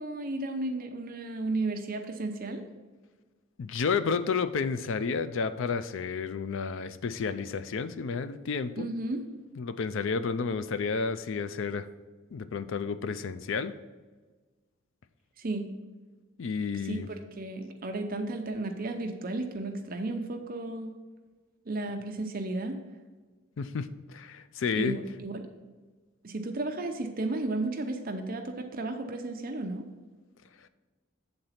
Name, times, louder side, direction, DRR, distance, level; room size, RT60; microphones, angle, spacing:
voice 1, 0.0-2.6 8.8-9.2 15.4-15.7 16.8-17.0 17.4-20.9 21.7-22.8 24.8-25.5 26.2-29.8, right 2 dB, 45° right, 5 dB, 0.6 m, -33 dB
voice 2, 3.6-8.9 9.6-11.9 12.3-13.7 16.4-17.1 23.6-25.0, left 5 dB, 65° left, 12 dB, 0.4 m, -31 dB
7.8 x 3.9 x 5.7 m, 1.3 s
head